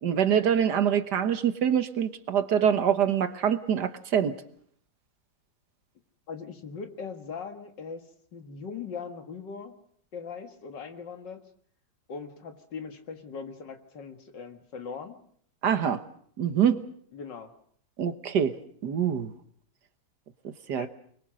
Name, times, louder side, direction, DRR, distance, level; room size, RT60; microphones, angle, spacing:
voice 1, 0.0-4.3 15.6-16.0 16.4-16.8 18.0-18.5 18.8-19.3 20.7-20.9, right 8 dB, 65° right, 11 dB, 1.7 m, -25 dB
voice 2, 6.3-8.0 8.3-9.7 10.1-11.4 12.1-15.2 17.1-17.5 20.7-20.9, left 5 dB, 70° left, 7 dB, 2.5 m, -40 dB
24.5 x 22.0 x 6.4 m, 0.62 s
omnidirectional pair, 2.0 m